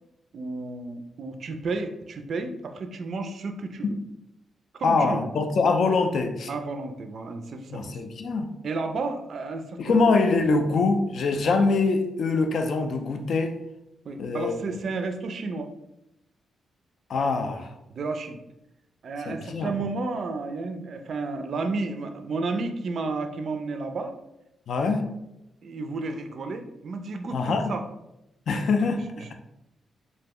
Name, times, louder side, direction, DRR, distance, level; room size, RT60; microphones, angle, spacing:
voice 1, 0.3-4.0 4.8-5.3 6.5-8.0 8.6-10.1 14.1-15.7 17.9-18.4 19.0-24.1 25.6-27.8 28.9-29.3, right 3 dB, 55° right, 6 dB, 0.3 m, -32 dB
voice 2, 4.8-6.5 7.7-8.5 9.8-13.6 14.2-14.6 17.1-17.7 19.3-19.7 24.7-25.0 27.3-27.7 28.5-29.0, left 3 dB, 60° left, 6 dB, 0.3 m, -24 dB
2.6 x 2.0 x 3.5 m, 0.88 s
cardioid pair, 125°, 0 cm